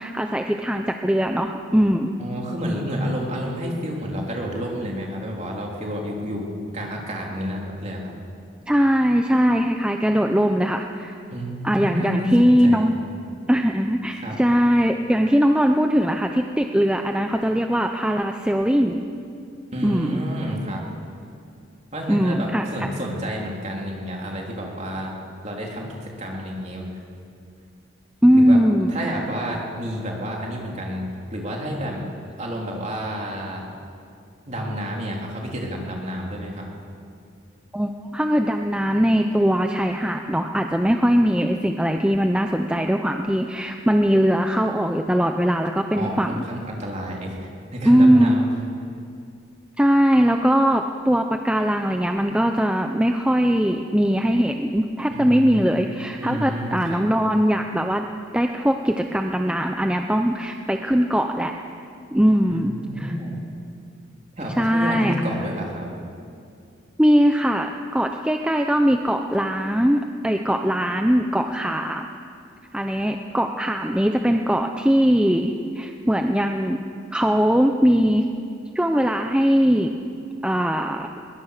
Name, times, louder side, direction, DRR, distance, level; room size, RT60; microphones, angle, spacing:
voice 1, 0.0-2.2 8.7-11.1 11.6-13.0 13.5-19.0 19.8-20.2 22.1-22.9 28.2-29.2 37.7-46.4 47.9-48.4 49.8-58.1 58.3-61.5 62.1-63.1 64.6-65.1 67.0-72.1 72.7-76.8 77.1-78.3 78.7-79.9 80.4-81.1, equal, 5° right, 4 dB, 0.6 m, -20 dB
voice 2, 2.2-6.5 6.7-8.1 11.3-12.9 14.1-14.4 19.7-20.8 21.9-25.1 25.4-27.0 28.3-28.6 28.9-32.0 32.4-33.7 34.5-36.7 46.0-48.5 55.1-55.8 56.2-57.0 62.4-63.4 64.4-65.9, equal, 35° right, -1 dB, 3.5 m, -30 dB
21.5 x 20.0 x 6.6 m, 2.4 s
head